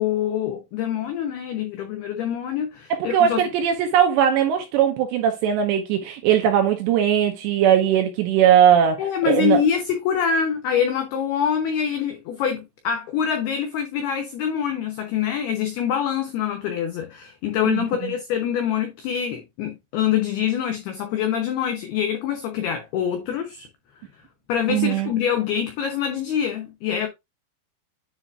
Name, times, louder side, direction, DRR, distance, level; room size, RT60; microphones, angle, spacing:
voice 1, 0.0-3.4 9.0-23.7 24.5-27.1, left 8 dB, 85° left, 2.2 m, -25 dB
voice 2, 2.9-9.0 9.3-9.6 17.7-18.1 24.7-25.1, right 9 dB, 80° right, 2.7 m, -19 dB
10.0 x 5.0 x 2.4 m
omnidirectional pair, 5.9 m